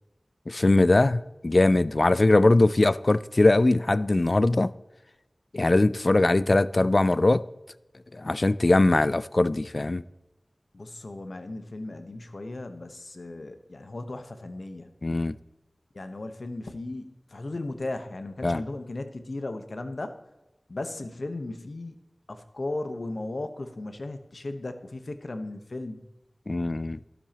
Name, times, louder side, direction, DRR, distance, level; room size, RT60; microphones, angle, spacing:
voice 1, 0.5-4.7 5.5-7.4 8.1-10.0 15.0-15.4 18.4-18.6 26.5-27.0, left 2 dB, 55° left, 0.4 m, -21 dB
voice 2, 10.7-14.9 15.9-20.2 20.7-22.0 22.3-26.0, left 2 dB, 70° left, 1.1 m, -36 dB
12.5 x 12.0 x 2.9 m
wide cardioid pair, 50°, 0 cm